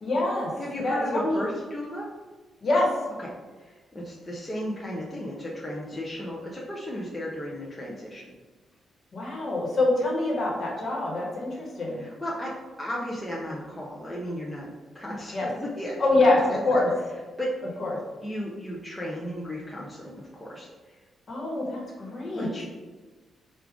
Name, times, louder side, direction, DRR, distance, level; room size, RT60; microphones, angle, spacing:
voice 1, 0.0-0.5 0.8-1.4 2.6-2.9 9.1-12.0 15.3-15.5 16.0-16.9 17.8-18.0 21.3-22.5, left 2 dB, 40° left, -3 dB, 1.2 m, -25 dB
voice 2, 0.6-2.1 3.2-3.3 3.6-8.3 11.9-12.5 12.8-14.7 14.9-16.0 16.3-16.8 17.4-17.5 18.2-20.7 22.3-22.6, equal, 5° left, -6 dB, 0.5 m, -34 dB
4.7 x 2.4 x 3.5 m, 1.3 s
wide cardioid pair, 150°, 0 cm